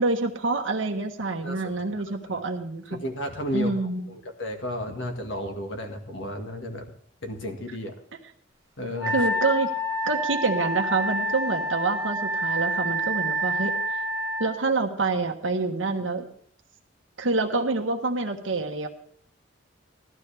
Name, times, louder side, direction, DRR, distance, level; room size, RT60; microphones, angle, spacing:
voice 1, 0.0-3.0 3.5-4.1 9.1-9.7 10.0-13.7 14.4-16.3 17.2-18.9, right 3 dB, 80° right, 4 dB, 1.2 m, -27 dB
voice 2, 2.9-6.9 7.2-7.9 8.8-9.3, left 1 dB, 70° left, 4 dB, 1.9 m, -33 dB
Wind instrument woodwind instrument, 9.0-14.5, equal, 15° right, 1.9 m, -28 dB
16.5 x 12.5 x 3.4 m, 0.62 s
head